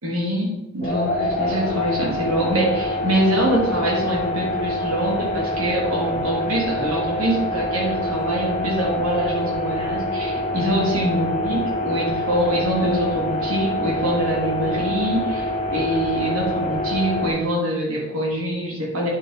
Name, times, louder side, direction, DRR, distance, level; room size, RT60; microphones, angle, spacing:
voice 1, 0.0-19.1, right 1 dB, 85° right, -3 dB, 3.0 m, -24 dB
sound 1, 0.8-17.3, left 1 dB, 35° left, 1.1 m, -26 dB
9.7 x 5.3 x 4.4 m, 1.0 s
head